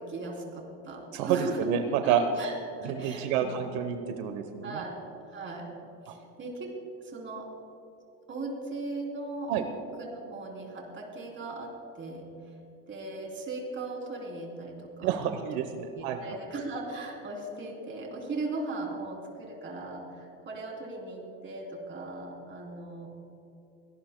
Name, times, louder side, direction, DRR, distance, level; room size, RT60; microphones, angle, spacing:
voice 1, 0.0-1.7 2.0-3.9 4.6-5.0 5.3-5.7 6.0-6.7 7.0-7.5 8.3-9.7 10.0-12.3 12.9-15.6 15.9-23.1, right 2 dB, 25° right, 0 dB, 3.2 m, -38 dB
voice 2, 1.1-2.2 2.8-4.8 6.1-6.2 9.5-9.6 15.0-16.2, right 9 dB, 75° right, 7 dB, 1.1 m, -29 dB
23.5 x 18.0 x 2.2 m, 2.8 s
cardioid pair, 140°, 42 cm